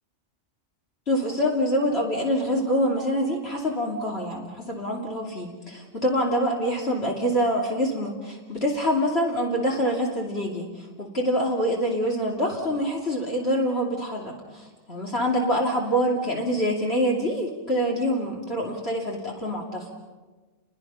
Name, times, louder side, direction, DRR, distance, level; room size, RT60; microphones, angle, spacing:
voice 1, 1.1-19.9, equal, 55° left, -2 dB, 3.2 m, -25 dB
30.0 x 23.0 x 5.7 m, 1.3 s
omnidirectional pair, 1.3 m